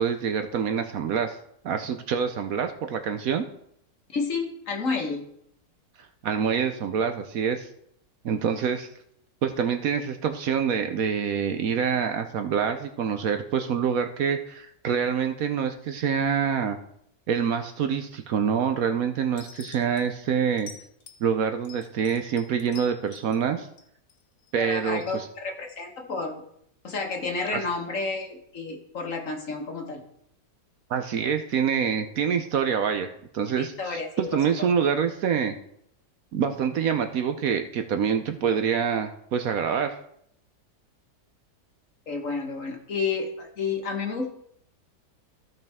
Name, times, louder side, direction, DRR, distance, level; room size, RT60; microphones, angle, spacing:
voice 1, 0.0-1.4 1.6-3.5 6.2-7.7 8.2-8.9 9.4-16.8 17.3-20.7 21.2-23.7 24.5-25.3 27.5-27.6 30.9-35.6 36.3-40.0, right 7 dB, 65° right, 7 dB, 1.0 m, -26 dB
voice 2, 4.1-5.3 24.6-26.4 26.8-30.0 33.8-34.2 42.1-44.3, left 4 dB, 50° left, 2 dB, 1.6 m, -30 dB
sound 1, 19.4-20.0 20.6-21.2 21.6-23.4 23.8-24.5 25.0-25.2, left 7 dB, 80° left, 1.7 m, -46 dB
14.5 x 5.3 x 3.5 m, 0.71 s
omnidirectional pair, 1.8 m